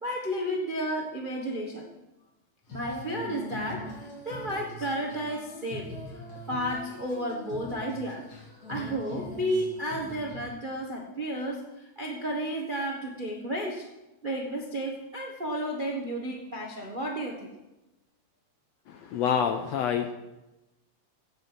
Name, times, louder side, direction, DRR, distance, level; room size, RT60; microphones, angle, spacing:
voice 1, 0.0-1.9 2.7-5.9 6.5-8.2 8.7-13.9 14.2-17.5, equal, 40° right, 0 dB, 0.7 m, -32 dB
Female singing, 2.6-10.4, equal, 60° left, 4.1 m, -42 dB
voice 2, 19.1-20.1, left 8 dB, 75° left, 7 dB, 1.6 m, -26 dB
16.0 x 8.1 x 5.6 m, 0.98 s
omnidirectional pair, 3.6 m